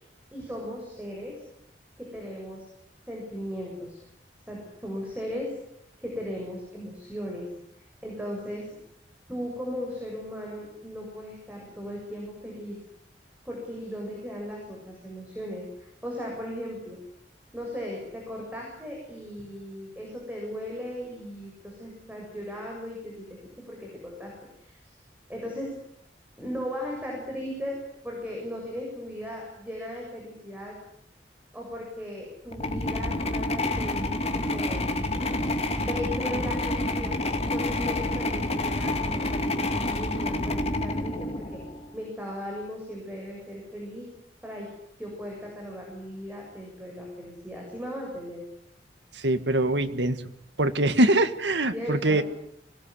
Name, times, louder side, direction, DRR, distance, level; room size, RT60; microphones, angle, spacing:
voice 1, 0.3-1.4 2.0-2.6 3.1-4.0 4.5-5.5 6.0-7.5 8.0-8.7 9.3-12.8 13.4-17.0 17.5-23.3 23.7-24.8 25.3-25.7 26.4-27.8 28.0-30.8 31.5-34.8 35.8-37.2 37.5-41.6 41.9-44.1 44.4-44.7 45.0-48.4 51.7-52.2, equal, 10° right, -2 dB, 7.5 m, -37 dB
sound 1, 32.5-41.9, left 2 dB, 35° left, 2.6 m, -28 dB
voice 2, 49.1-50.2 50.6-52.2, right 1 dB, 75° right, 10 dB, 1.8 m, -23 dB
25.5 x 20.5 x 10.0 m, 0.74 s
head